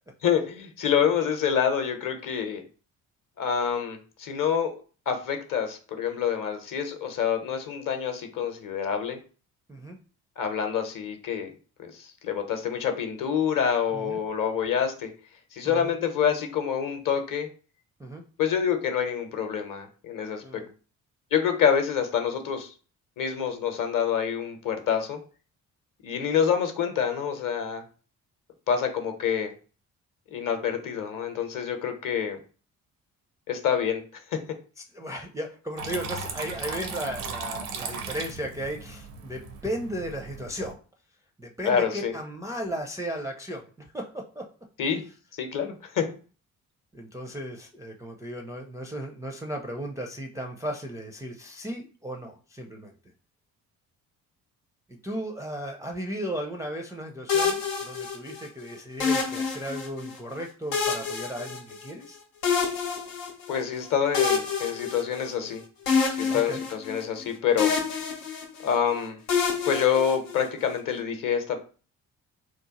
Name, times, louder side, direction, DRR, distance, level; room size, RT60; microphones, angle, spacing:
voice 1, 0.2-2.6 3.4-4.7 5.1-9.2 10.4-11.5 11.8-15.1 15.5-17.5 18.4-20.6 21.3-22.7 23.2-25.2 26.0-27.8 28.7-29.5 30.3-32.4 33.5-34.0 34.3-34.4 41.7-42.1 44.8-45.0 45.4-46.1 63.5-65.6 66.2-67.8 68.6-69.2 69.6-71.6, left 8 dB, 45° left, 6 dB, 0.8 m, -27 dB
voice 2, 34.9-40.8 41.4-43.7 43.9-44.5 46.9-52.9 55.0-62.2 66.3-66.6, equal, 10° right, 1 dB, 0.4 m, -35 dB
Water tap faucet / Trickle dribble, 35.8-40.7, right 4 dB, 75° right, 0.6 m, -37 dB
sound 1, 57.3-58.5 59.0-60.1 60.7-62.1 62.4-63.6 64.1-65.5 65.9-67.3 67.6-68.8 69.3-70.6, left 5 dB, 85° left, 0.7 m, -27 dB
2.9 x 2.1 x 2.8 m, 0.38 s
figure-of-eight pair, 40°, 45 cm